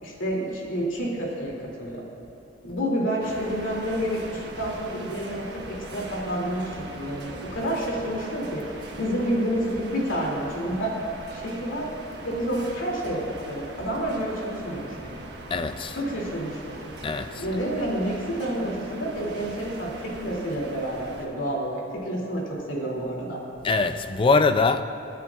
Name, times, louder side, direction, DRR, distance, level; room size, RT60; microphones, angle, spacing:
voice 1, 0.0-2.0 2.6-8.6 9.0-11.0 11.3-11.9 12.2-15.2 15.9-16.8 17.4-23.4, equal, 85° left, 2.7 m, -29 dB
sound 1, 3.2-21.3, right 1 dB, 60° right, 1.4 m, -41 dB
voice 2, 15.5-16.0 17.0-17.4 23.6-24.8, left 4 dB, 25° left, 0.4 m, -22 dB
28.0 x 10.0 x 2.4 m
head